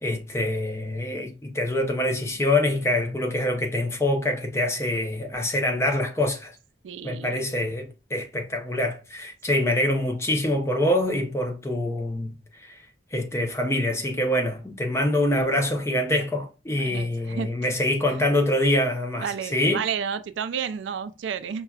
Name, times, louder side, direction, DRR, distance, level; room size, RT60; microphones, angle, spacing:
voice 1, 0.0-6.6 7.0-12.8 13.1-19.8, left 1 dB, 15° left, 0.5 m, -25 dB
voice 2, 6.8-7.4 16.7-17.5 19.2-21.6, right 7 dB, 85° right, 0.4 m, -31 dB
5.5 x 2.3 x 2.3 m
head